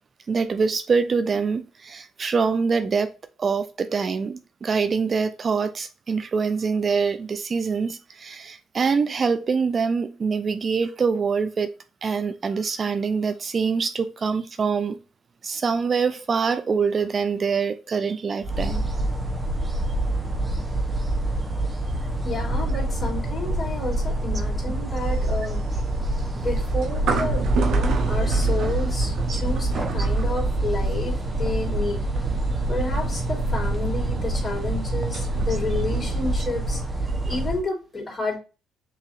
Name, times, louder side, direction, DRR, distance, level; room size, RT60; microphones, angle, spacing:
voice 1, 0.3-3.1 3.4-11.7 12.0-15.0 15.4-18.9 29.3-29.4 30.0-30.1 35.7-35.8 37.2-37.4, right 5 dB, 40° right, 0.4 m, -25 dB
sound 1, 18.4-37.6, right 1 dB, 25° right, 1.0 m, -26 dB
voice 2, 22.2-25.6 26.3-32.1 32.7-36.8 37.3-38.4, left 2 dB, 30° left, 2.8 m, -30 dB
sound 2, 25.0-36.4, right 4 dB, 70° right, 0.9 m, -30 dB
sound 3, 32.5-33.7, right 1 dB, 5° right, 1.9 m, -40 dB
6.8 x 2.9 x 2.5 m
cardioid pair, 80°, 0 cm